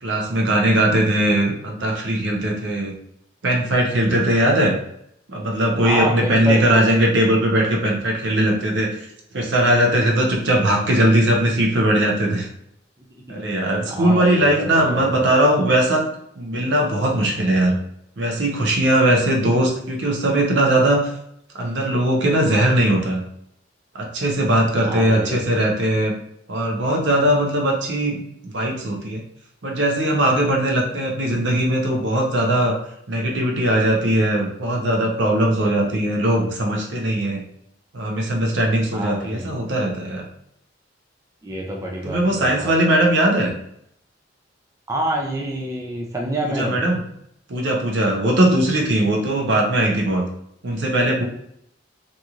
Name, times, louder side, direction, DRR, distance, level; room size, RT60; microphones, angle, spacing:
voice 1, 0.0-2.9 3.4-4.8 5.3-9.1 9.3-12.5 13.3-16.0 16.4-17.8 18.2-21.1 21.5-23.2 23.9-26.2 26.5-29.2 29.6-32.8 33.1-37.4 37.9-40.3 42.0-43.5 46.4-47.0 47.5-50.2 50.6-51.2, right 1 dB, 75° right, 0 dB, 0.7 m, -19 dB
voice 2, 5.8-6.9 13.3-13.4 13.9-15.2 24.8-25.4 38.9-39.5 41.4-42.7 43.0-43.1 44.9-46.8, right 1 dB, 15° right, -1 dB, 0.4 m, -27 dB
2.9 x 2.6 x 2.4 m, 0.72 s
head